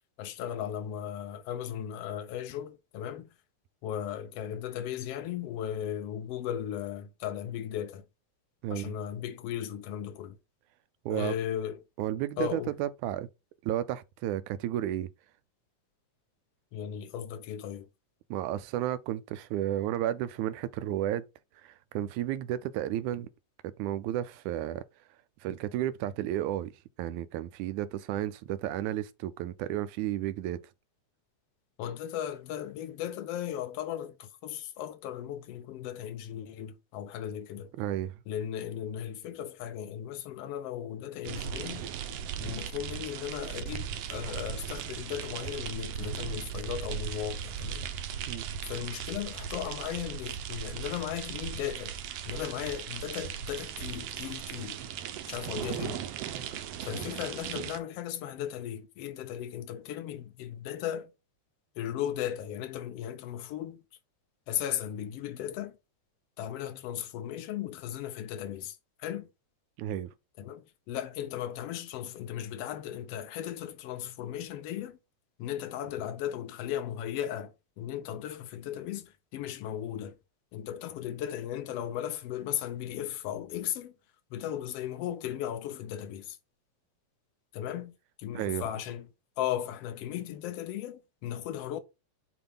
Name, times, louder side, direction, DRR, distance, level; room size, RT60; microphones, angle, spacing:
voice 1, 0.2-3.3 3.8-8.1 8.7-10.4 11.1-11.8 12.4-12.8 16.7-17.9 31.8-37.7 38.3-41.9 42.4-47.9 48.7-52.0 52.3-54.8 55.3-56.0 56.9-61.1 61.8-63.8 64.5-65.8 66.4-69.3 70.4-75.0 75.4-80.2 80.5-83.9 84.3-86.4 87.5-87.9 88.2-89.1 89.4-91.8, left 10 dB, 70° left, 1.6 m, -36 dB
voice 2, 8.6-8.9 11.1-11.3 12.0-13.3 13.6-15.1 18.3-21.2 21.6-23.3 23.6-24.8 25.4-26.7 27.0-30.6 37.8-38.1 48.3-48.5 69.8-70.1 88.3-88.6, right 12 dB, 85° right, 2.1 m, -32 dB
sound 1, 41.2-57.8, right 8 dB, 70° right, 1.6 m, -37 dB
7.0 x 3.1 x 5.5 m
omnidirectional pair, 3.4 m